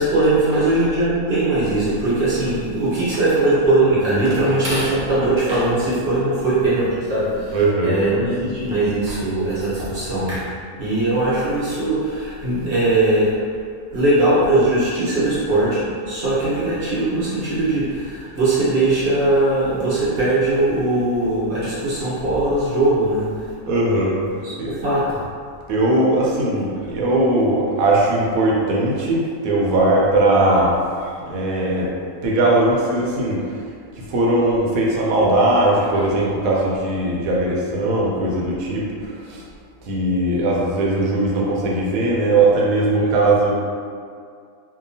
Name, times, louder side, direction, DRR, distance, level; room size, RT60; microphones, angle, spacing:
voice 1, 0.0-10.5 10.8-13.4 13.9-23.4 24.4-25.2, right 2 dB, 50° right, -11 dB, 1.1 m, -20 dB
voice 2, 7.5-8.0 23.7-24.2 24.6-24.7 25.7-30.8 31.2-31.9 32.2-33.5 34.0-39.4 39.8-43.5, right 2 dB, 85° right, -3 dB, 1.0 m, -19 dB
2.7 x 2.2 x 2.6 m, 2.2 s
omnidirectional pair, 1.4 m